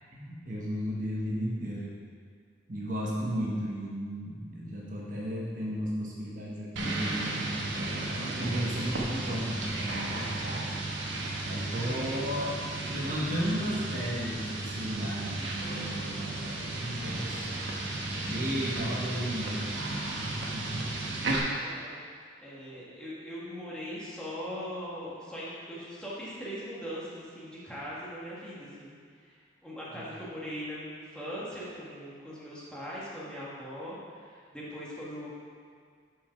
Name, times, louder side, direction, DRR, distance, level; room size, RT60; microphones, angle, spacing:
voice 1, 0.1-2.0 2.7-10.6 11.4-12.5 12.8-17.3 17.7-17.8 18.2-19.7 20.0-20.9 29.9-30.1, equal, 45° right, -5 dB, 1.1 m, -34 dB
sound 1, 6.8-21.4, right 2 dB, 85° right, 1.0 m, -34 dB
voice 2, 21.1-22.0 22.4-29.0 29.2-29.4 29.6-35.3, equal, 5° left, -8 dB, 1.5 m, -40 dB
6.2 x 5.1 x 5.7 m, 2.1 s
head